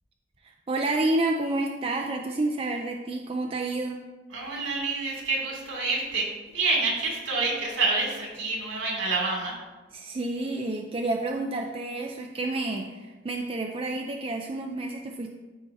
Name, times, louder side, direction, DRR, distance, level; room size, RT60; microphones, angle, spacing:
voice 1, 0.4-4.0 9.9-15.3, right 2 dB, 30° right, 2 dB, 0.4 m, -29 dB
voice 2, 4.3-9.5, right 3 dB, 75° right, -3 dB, 2.6 m, -28 dB
13.5 x 4.5 x 2.7 m, 1.2 s
head